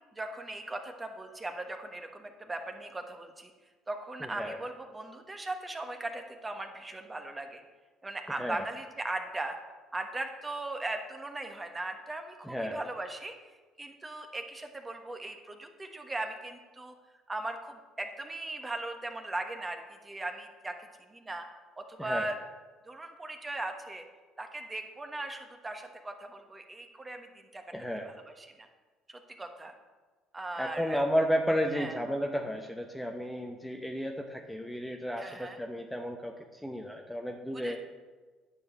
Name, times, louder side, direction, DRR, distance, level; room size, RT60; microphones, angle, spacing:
voice 1, 0.1-3.5 3.9-7.6 8.0-9.6 9.9-16.9 17.3-21.5 21.8-22.4 22.8-24.0 24.4-27.7 28.0-28.7 29.1-29.7 30.3-31.0 31.7-32.0 35.2-35.6 37.6-37.8, right 2 dB, 20° right, 5 dB, 1.3 m, -39 dB
voice 2, 4.2-4.6 8.4-8.6 12.4-12.8 22.0-22.3 27.7-28.1 30.5-37.8, equal, 5° left, 3 dB, 0.9 m, -33 dB
9.5 x 4.9 x 7.3 m, 1.3 s
supercardioid pair, 75°, 0 cm